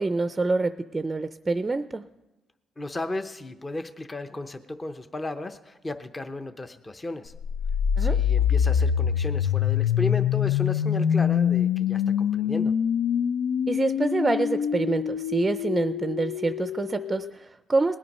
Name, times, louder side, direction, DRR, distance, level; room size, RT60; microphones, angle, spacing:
voice 1, 0.0-2.0 8.0-8.2 13.7-18.0, right 3 dB, 25° right, 10 dB, 0.5 m, -26 dB
voice 2, 2.8-7.3 8.0-12.7, left 2 dB, 25° left, 8 dB, 0.7 m, -34 dB
sound 1, 7.3-17.3, left 8 dB, 80° left, 0.5 m, -25 dB
19.5 x 8.7 x 5.4 m, 1.1 s
cardioid pair, 90°, 0 cm